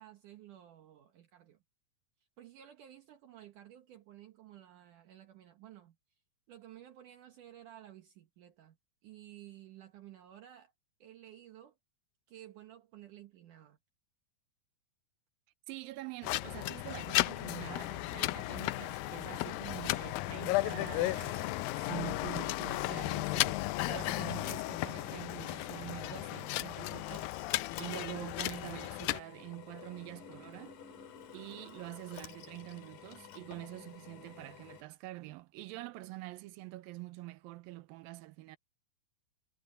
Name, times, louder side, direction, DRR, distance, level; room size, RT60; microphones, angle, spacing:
voice 1, 0.0-1.6 2.4-6.2 6.5-8.8 9.0-10.7 11.0-11.8 12.3-13.8, right 12 dB, 65° right, 2.7 m, -54 dB
voice 2, 15.7-30.8 31.3-38.6, right 18 dB, 90° right, 2.6 m, -46 dB
sound 1, 16.2-29.2, left 18 dB, 85° left, 2.4 m, -35 dB
Drill, 16.4-34.8, left 8 dB, 65° left, 3.3 m, -52 dB
omnidirectional pair, 4.0 m